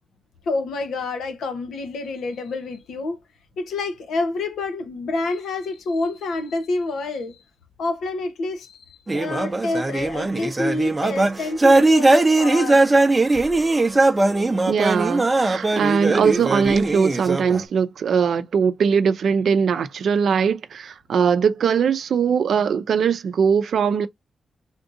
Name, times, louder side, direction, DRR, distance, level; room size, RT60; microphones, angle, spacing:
voice 1, 0.5-3.2 3.6-7.4 7.8-12.8, left 3 dB, 80° left, 0.9 m, -28 dB
sound 1, 9.1-17.6, right 2 dB, 20° right, 0.6 m, -19 dB
voice 2, 14.7-24.1, right 6 dB, 65° right, 0.5 m, -20 dB
3.5 x 2.7 x 2.5 m
cardioid pair, 95°, 0 cm